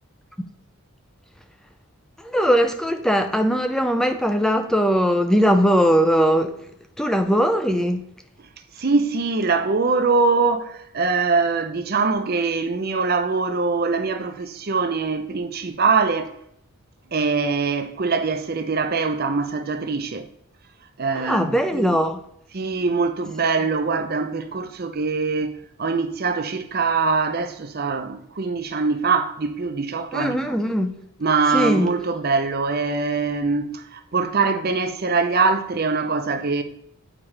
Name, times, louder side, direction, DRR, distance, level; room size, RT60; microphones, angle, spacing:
voice 1, 2.2-6.6 7.0-8.1 21.2-22.2 30.1-31.0 31.5-31.9, equal, ahead, 0.4 m, -20 dB
voice 2, 8.8-16.3 17.1-20.3 21.0-22.0 22.5-30.4 31.2-36.6, right 4 dB, 45° right, 0.6 m, -23 dB
8.7 x 5.0 x 3.3 m
head